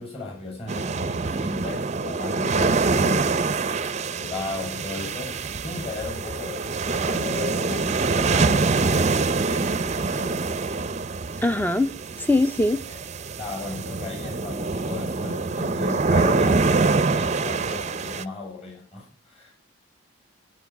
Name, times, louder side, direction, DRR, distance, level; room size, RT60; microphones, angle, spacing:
voice 1, 0.0-3.5 4.2-5.4 5.6-10.4 12.9-13.0 13.4-19.5, left 3 dB, 30° left, 7.6 m, -35 dB
sound 1, 0.7-18.2, right 4 dB, 35° right, 0.6 m, -25 dB
voice 2, 11.4-11.9 12.2-12.8, left 2 dB, 10° left, 0.6 m, -21 dB
16.5 x 9.0 x 5.9 m
head